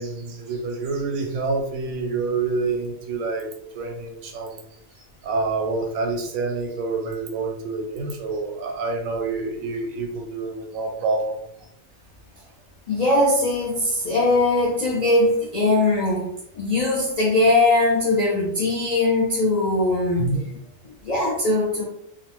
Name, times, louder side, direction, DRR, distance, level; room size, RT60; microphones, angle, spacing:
voice 1, 0.0-4.6 5.2-11.4 20.2-20.4, right 3 dB, 80° right, 3 dB, 1.0 m, -27 dB
voice 2, 12.9-16.3 16.6-20.3 21.0-21.8, left 2 dB, 60° left, -4 dB, 0.4 m, -20 dB
2.7 x 2.0 x 3.0 m, 0.73 s
omnidirectional pair, 1.4 m